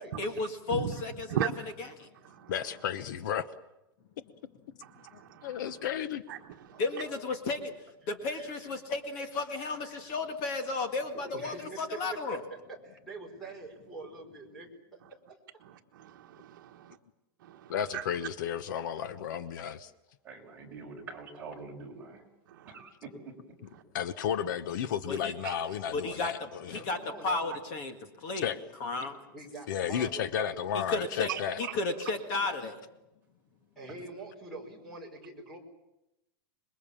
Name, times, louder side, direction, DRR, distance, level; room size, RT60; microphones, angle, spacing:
voice 1, 0.2-1.5 1.8-2.1 6.8-7.6 8.1-12.4 25.1-25.3 25.9-26.3 26.7-27.0 27.2-28.5 28.8-29.2 30.7-31.3 31.6-32.8, left 3 dB, 35° left, 6 dB, 2.0 m, -33 dB
voice 2, 1.3-1.7 2.2-2.5 4.8-5.5 6.3-6.4 6.7-6.8 15.6-17.0 17.4-18.0 22.5-22.7 25.4-25.6 31.3-31.4, right 10 dB, 60° right, 5 dB, 1.4 m, -37 dB
voice 3, 2.5-3.5 5.1-6.2 17.7-19.9 23.9-26.8 28.4-28.6 29.7-31.6, left 9 dB, 55° left, 13 dB, 1.1 m, -33 dB
voice 4, 6.7-7.3 8.3-8.4 11.3-12.0 12.3-12.4 12.8-14.8 26.7-27.5 29.3-30.6 33.7-35.6, right 3 dB, ahead, -1 dB, 4.9 m, -44 dB
voice 5, 20.2-22.3 22.7-23.3, right 4 dB, 15° right, -3 dB, 5.5 m, -45 dB
27.0 x 22.0 x 7.4 m, 0.91 s
supercardioid pair, 175°, 12 cm